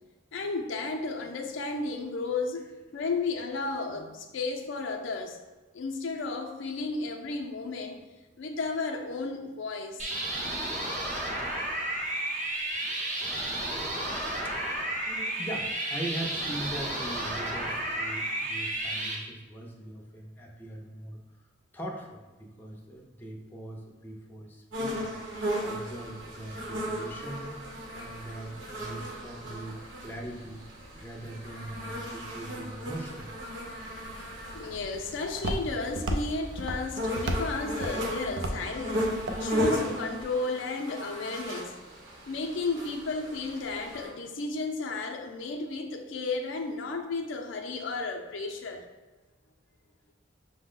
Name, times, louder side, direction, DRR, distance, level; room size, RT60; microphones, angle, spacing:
voice 1, 0.3-2.7 2.9-5.4 5.7-8.0 8.4-10.0 34.5-41.8 42.3-48.9, left 3 dB, 80° left, 3 dB, 0.5 m, -33 dB
sound 1, 10.0-19.1, right 1 dB, 40° right, 0.8 m, -32 dB
voice 2, 15.0-21.2 21.7-25.1 25.6-27.6 27.9-29.8 30.0-30.6 31.0-33.3, right 1 dB, 10° left, -1 dB, 0.5 m, -41 dB
sound 2, 24.7-44.1, equal, 85° right, 0.9 m, -36 dB
Walk footsteps, 34.0-40.2, right 1 dB, 65° right, 0.4 m, -36 dB
5.5 x 2.1 x 3.7 m, 1.2 s
head